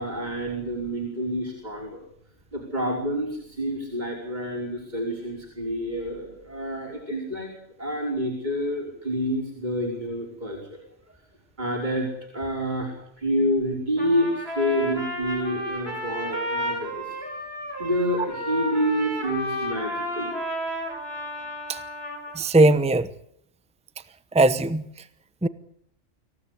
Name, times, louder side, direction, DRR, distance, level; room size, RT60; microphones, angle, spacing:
voice 1, 0.0-2.1 2.5-7.5 7.8-10.8 11.6-12.1 12.3-17.2 17.8-20.3 21.1-21.2, equal, 35° right, 5.2 m, -28 dB
Trumpet, 14.0-22.4, equal, 55° right, 7.4 m, -32 dB
voice 2, 22.3-23.1 24.3-24.8 25.4-25.5, right 2 dB, 5° right, 0.9 m, -19 dB
26.5 x 16.5 x 8.3 m
omnidirectional pair, 1.2 m